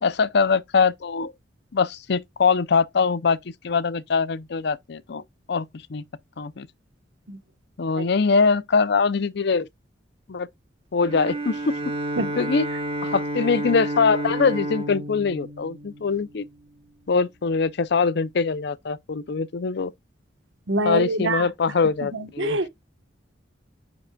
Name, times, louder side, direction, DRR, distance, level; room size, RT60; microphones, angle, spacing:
voice 1, 0.0-1.3 1.7-3.4 3.6-5.2 5.5-6.0 6.4-6.7 7.8-9.7 10.3-10.5 10.9-11.7 12.4-12.6 13.0-16.4 17.1-19.9 20.8-22.6, left 5 dB, 65° left, 0.5 m, -23 dB
Bowed string instrument, 11.0-16.5, right 1 dB, 30° right, 1.4 m, -30 dB
voice 2, 20.7-21.4 22.1-22.7, right 2 dB, 90° right, 1.2 m, -25 dB
9.4 x 5.1 x 2.3 m
head